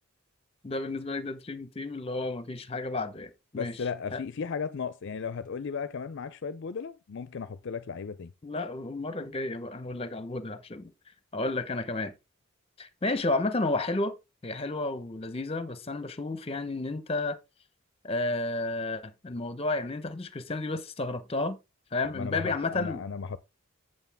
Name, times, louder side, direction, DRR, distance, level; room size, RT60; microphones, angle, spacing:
voice 1, 0.6-3.8 4.1-4.2 8.4-10.9 11.3-12.1 12.8-14.2 14.4-17.4 18.0-21.6 21.9-23.0, left 2 dB, 30° left, 0.8 m, -32 dB
voice 2, 3.5-8.3 22.1-23.4, left 5 dB, 60° left, 0.5 m, -35 dB
8.1 x 7.6 x 3.5 m
head